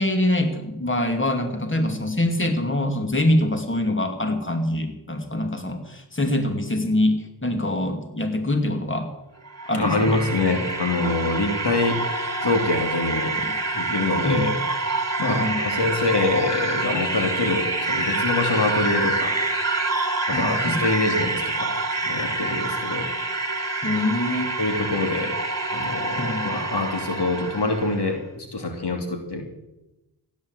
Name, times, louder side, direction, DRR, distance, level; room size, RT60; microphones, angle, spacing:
voice 1, 0.0-9.1 9.7-10.2 14.2-14.5 15.2-15.6 20.3-20.8 23.8-24.5 26.2-26.5, left 1 dB, 30° left, 6 dB, 2.8 m, -24 dB
sound 1, 9.4-28.0, right 3 dB, 35° right, 2.4 m, -27 dB
voice 2, 9.7-12.0 12.4-13.4 13.7-14.5 15.2-19.4 20.3-21.7 22.0-23.1 24.6-25.3 25.7-29.4, left 3 dB, 70° left, 4 dB, 3.0 m, -25 dB
16.0 x 10.5 x 8.1 m, 0.95 s
cardioid pair, 50°, 42 cm